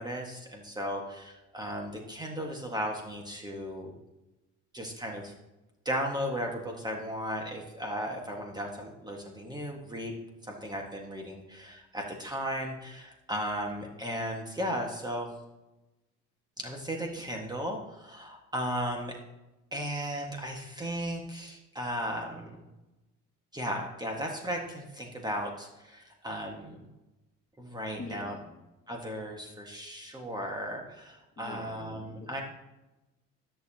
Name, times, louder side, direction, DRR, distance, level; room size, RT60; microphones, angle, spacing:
voice 1, 0.0-3.9 4.7-5.3 5.8-10.1 10.4-15.3 16.6-19.2 19.7-22.6 23.5-26.8 27.6-28.3 28.9-32.4, equal, 15° right, 1 dB, 1.7 m, -36 dB
voice 2, 28.0-28.6 31.4-32.4, left 3 dB, 25° left, 1 dB, 1.9 m, -45 dB
13.5 x 6.9 x 2.9 m, 1.0 s
cardioid pair, 100°, 30 cm